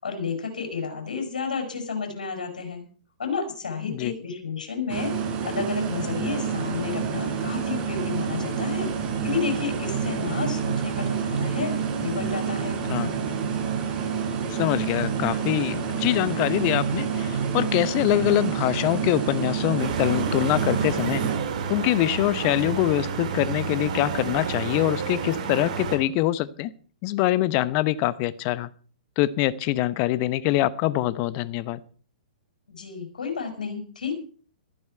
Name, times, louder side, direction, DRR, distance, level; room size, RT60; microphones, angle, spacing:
voice 1, 0.0-2.8 3.2-5.1 5.4-8.9 9.2-12.8 32.7-34.1, left 5 dB, 70° left, 6.6 m, -31 dB
voice 2, 3.8-4.1 12.9-13.1 14.5-21.2 21.5-26.7 27.0-28.7 29.2-31.8, left 15 dB, 35° left, 0.9 m, -24 dB
sound 1, 4.9-21.4, right 7 dB, 30° right, 6.7 m, -29 dB
sound 2, 6.9-21.5, right 6 dB, 80° right, 0.9 m, -34 dB
sound 3, 19.8-26.0, right 6 dB, 55° right, 4.8 m, -30 dB
15.5 x 14.0 x 4.6 m
figure-of-eight pair, 115°, 5 cm